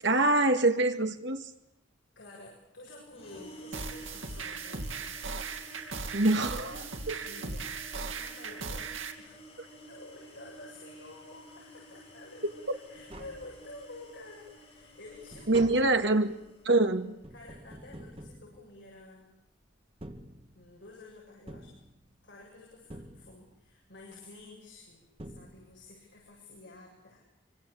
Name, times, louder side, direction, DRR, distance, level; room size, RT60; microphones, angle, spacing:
voice 1, 0.0-1.4 6.1-6.8 15.5-16.3 16.6-17.1, right 2 dB, 60° right, 6 dB, 2.2 m, -24 dB
voice 2, 2.2-5.2 6.7-8.9 9.2-9.4 9.9-16.1 17.3-19.4 20.5-21.7 22.2-27.3, left 2 dB, 60° left, -2 dB, 7.7 m, -50 dB
sound 1, 3.1-17.0, right 1 dB, 30° left, 7.0 m, -52 dB
sound 2, 3.7-9.1, right 4 dB, 90° right, 2.9 m, -38 dB
Tap, 12.7-12.8 12.9-14.1 14.5-19.2 19.8-20.9 21.5-22.4 22.9-23.7 24.8-24.9 25.2-26.0 26.3-26.4, right 1 dB, 30° right, 2.0 m, -48 dB
26.5 x 25.0 x 8.7 m, 0.81 s
head